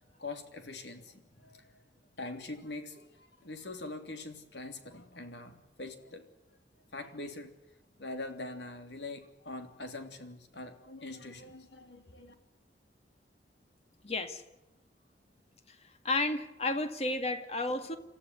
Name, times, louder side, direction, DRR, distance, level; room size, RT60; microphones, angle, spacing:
voice 1, 0.2-1.8 2.2-6.3 6.9-7.5 8.0-12.3, left 2 dB, 75° left, 6 dB, 3.2 m, -43 dB
voice 2, 14.0-14.4 15.7-18.0, left 2 dB, 35° left, 8 dB, 2.0 m, -32 dB
28.0 x 14.5 x 9.6 m, 0.95 s
head